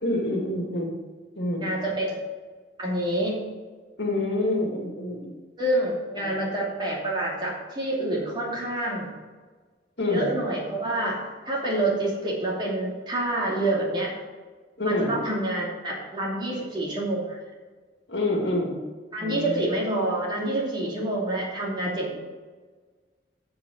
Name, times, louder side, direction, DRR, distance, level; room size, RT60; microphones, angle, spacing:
voice 1, 0.0-0.9 1.4-1.7 4.0-5.4 6.2-6.3 10.0-10.3 14.8-15.1 18.1-18.8 19.2-19.6, left 1 dB, 75° left, 0 dB, 2.2 m, -27 dB
voice 2, 1.6-2.2 2.8-3.4 5.6-9.1 10.1-11.2 11.4-14.2 14.8-17.4 19.1-22.2, right 1 dB, 25° right, -4 dB, 2.7 m, -27 dB
7.8 x 7.1 x 6.2 m, 1.4 s
head